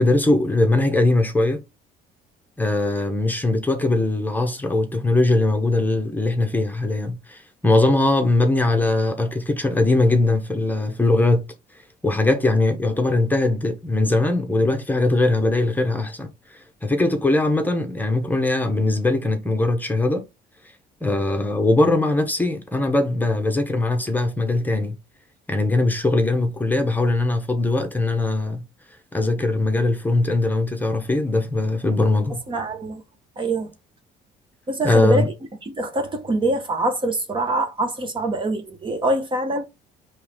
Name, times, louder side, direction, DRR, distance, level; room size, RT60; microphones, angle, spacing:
voice 1, 0.0-1.6 2.6-11.4 12.0-16.3 16.8-20.2 21.0-25.0 25.5-28.6 29.1-32.4 34.8-35.3, left 2 dB, 10° left, 1.1 m, -20 dB
voice 2, 32.5-33.0 33.4-33.7 34.7-35.3 35.6-39.7, right 2 dB, 30° right, 1.0 m, -24 dB
4.5 x 3.2 x 3.5 m
cardioid pair, 110°, 17 cm